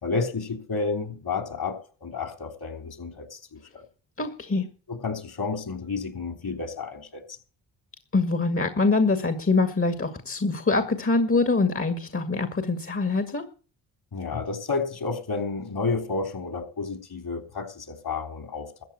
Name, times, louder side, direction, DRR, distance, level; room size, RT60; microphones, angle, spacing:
voice 1, 0.0-3.8 4.9-7.2 14.1-18.8, left 4 dB, 50° left, 4.0 m, -31 dB
voice 2, 4.2-4.7 8.1-13.4, left 3 dB, 30° left, 2.1 m, -24 dB
14.0 x 8.1 x 7.7 m
supercardioid pair, 50°, 47 cm